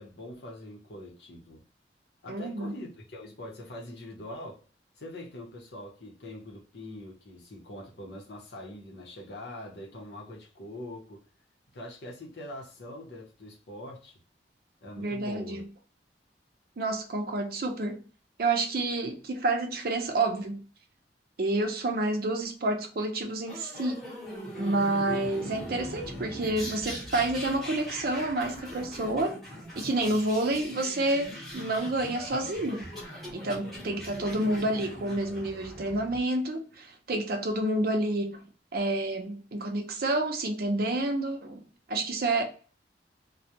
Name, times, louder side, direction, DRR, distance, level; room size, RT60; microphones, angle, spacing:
voice 1, 0.0-1.6 2.2-4.6 5.0-11.2 11.7-14.2 14.8-15.6, left 1 dB, 70° left, 0.8 m, -43 dB
voice 2, 2.3-2.7 15.0-15.7 16.8-18.0 18.4-20.6 21.4-24.0 24.6-29.4 29.8-32.9 33.3-38.4 38.7-41.6 41.9-42.4, right 2 dB, 55° right, 0.5 m, -29 dB
sound 1, 23.5-36.2, equal, ahead, 0.9 m, -41 dB
2.3 x 2.1 x 2.8 m
head